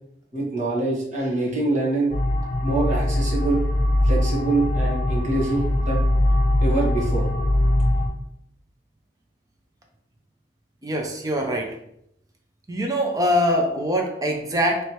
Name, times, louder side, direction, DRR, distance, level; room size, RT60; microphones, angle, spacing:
voice 1, 0.3-2.1 2.6-3.6 4.0-6.0 6.6-7.3, right 2 dB, 45° right, -4 dB, 1.4 m, -24 dB
sound 1, 2.1-8.1, left 1 dB, 35° left, 0.7 m, -21 dB
voice 2, 10.8-11.8 12.7-14.8, equal, 20° right, 2 dB, 0.5 m, -23 dB
4.7 x 3.2 x 3.0 m, 0.74 s
head